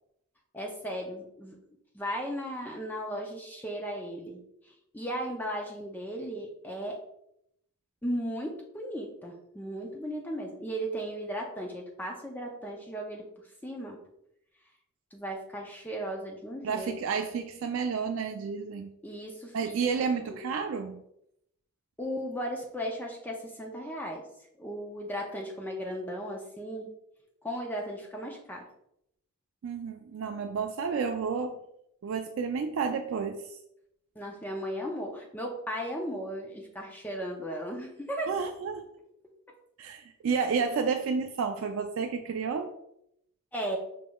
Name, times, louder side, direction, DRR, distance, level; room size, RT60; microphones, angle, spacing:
voice 1, 0.5-1.6 1.9-4.4 4.7-7.0 8.0-13.3 13.6-14.0 15.1-16.9 19.0-19.8 20.3-20.4 22.0-24.2 24.6-26.9 27.4-28.7 34.2-38.3 43.5-43.8, equal, 10° left, 0 dB, 0.4 m, -36 dB
voice 2, 16.6-19.0 19.5-21.0 29.6-31.6 32.0-33.6 38.3-38.9 39.8-42.7, right 5 dB, 65° right, 5 dB, 0.3 m, -31 dB
5.0 x 3.6 x 2.3 m, 0.77 s
head